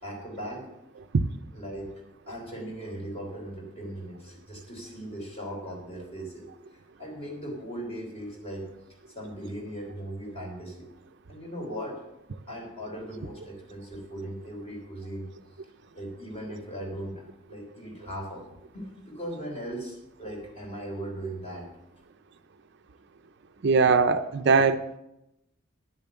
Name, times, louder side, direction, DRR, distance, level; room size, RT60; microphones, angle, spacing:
voice 1, 0.0-0.7 1.5-1.9 2.3-6.5 7.0-8.7 9.1-10.9 11.3-12.0 12.5-15.3 16.0-18.5 18.7-21.7, right 1 dB, 30° left, 0 dB, 3.4 m, -38 dB
voice 2, 23.6-25.0, right 4 dB, 55° right, 10 dB, 0.5 m, -21 dB
10.5 x 7.2 x 6.9 m, 0.86 s
head